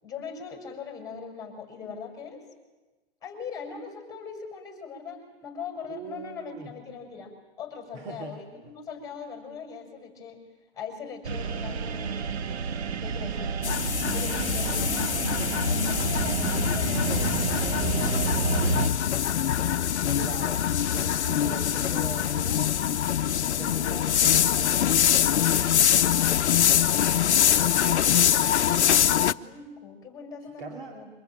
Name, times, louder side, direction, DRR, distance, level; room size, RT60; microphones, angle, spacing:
voice 1, 0.0-2.4 3.2-7.3 7.6-10.4 10.7-12.3 13.0-13.5 14.1-19.3 21.3-22.7 23.6-24.2 28.3-31.1, left 5 dB, 10° left, 3 dB, 6.2 m, -41 dB
voice 2, 5.9-6.7 7.9-8.4 20.1-20.7 20.9-22.8 23.3-25.3 27.1-28.2 30.6-31.0, right 3 dB, 45° right, 4 dB, 2.7 m, -41 dB
sound 1, 11.2-18.9, right 6 dB, 70° right, 1.4 m, -29 dB
sound 2, 13.6-29.3, left 10 dB, 85° left, 0.7 m, -24 dB
24.5 x 22.0 x 9.2 m, 1.2 s
hypercardioid pair, 135°, 33 cm